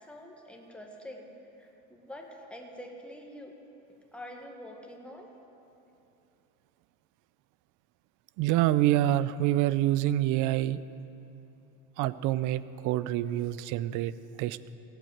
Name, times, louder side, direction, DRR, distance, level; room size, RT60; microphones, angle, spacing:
voice 1, 0.0-1.3 1.6-3.5 4.1-5.3, left 1 dB, 5° left, 1 dB, 1.8 m, -46 dB
voice 2, 8.4-10.8 12.0-14.1 14.4-14.6, right 14 dB, 65° right, 16 dB, 0.6 m, -26 dB
17.0 x 8.2 x 7.9 m, 2.9 s
supercardioid pair, 110°, 34 cm